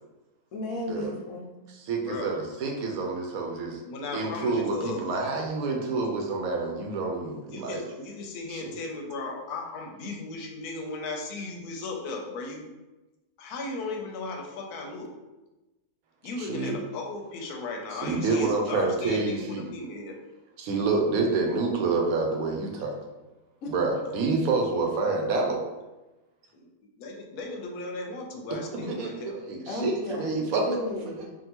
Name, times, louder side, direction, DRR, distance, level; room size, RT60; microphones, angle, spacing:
voice 1, 0.5-1.5 23.6-23.7 24.0-24.2 29.7-31.3, left 1 dB, 70° left, 0 dB, 1.0 m, -34 dB
voice 2, 1.7-3.8 4.1-7.8 8.5-8.7 16.4-16.8 17.9-19.6 20.6-22.9 23.7-25.6 28.7-30.7 31.2-31.3, right 3 dB, 75° right, 1 dB, 1.0 m, -28 dB
voice 3, 3.8-5.0 7.5-12.7 13.4-15.1 16.2-20.2 26.5-26.7 27.0-29.4, left 3 dB, 90° left, 1 dB, 1.1 m, -36 dB
3.6 x 2.4 x 2.8 m, 1.1 s
omnidirectional pair, 1.6 m